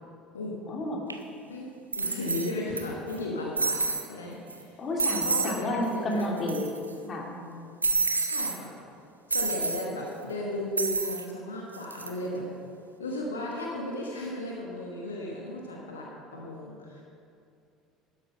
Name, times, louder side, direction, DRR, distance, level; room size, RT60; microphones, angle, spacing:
voice 1, 0.7-1.1 4.8-6.7 7.1-7.3, left 1 dB, 35° left, -1 dB, 2.2 m, -30 dB
sound 1, 1.1-1.2 1.9-2.8 3.1-3.2 3.6-4.1 4.5-4.6 5.0-5.6 5.9-6.0 6.2-6.9 7.8-8.6 9.3-9.9 10.8-11.3 11.7-12.1, right 4 dB, 85° right, 0.6 m, -28 dB
voice 2, 1.5-3.8 4.1-4.8 5.2-6.5 7.3-7.6 8.2-8.7 9.3-12.4 13.0-17.0, left 1 dB, 75° left, -2 dB, 1.2 m, -35 dB
12.0 x 8.1 x 5.3 m, 2.5 s
figure-of-eight pair, 65°, 0 cm